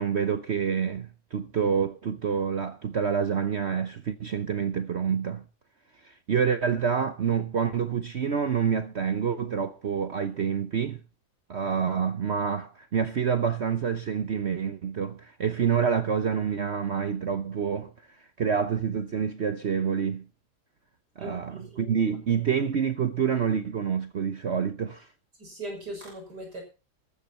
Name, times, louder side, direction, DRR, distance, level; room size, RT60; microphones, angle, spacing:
voice 1, 0.0-5.4 6.0-11.0 11.5-20.3 21.2-25.1, right 7 dB, 50° right, 1.0 m, -27 dB
voice 2, 21.2-21.9 25.4-26.6, right 1 dB, 80° right, 6.8 m, -39 dB
14.0 x 12.5 x 4.3 m
omnidirectional pair, 1.8 m